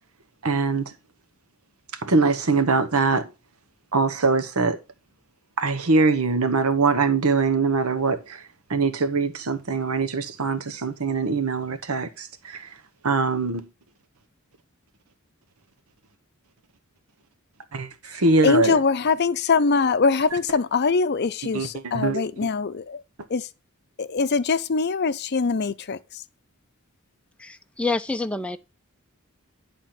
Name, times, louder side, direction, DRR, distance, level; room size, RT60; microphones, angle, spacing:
voice 1, 0.4-0.9 2.0-3.3 3.9-4.8 5.6-8.4 8.7-12.7 13.0-13.7 17.7-18.8 21.5-21.7 21.9-22.2, right 4 dB, 85° right, 1.0 m, -22 dB
voice 2, 18.1-23.0 23.3-23.5 24.0-26.2, left 4 dB, 50° left, 0.6 m, -23 dB
voice 3, 27.4-28.6, left 3 dB, 5° left, 0.5 m, -27 dB
10.5 x 3.7 x 5.8 m
head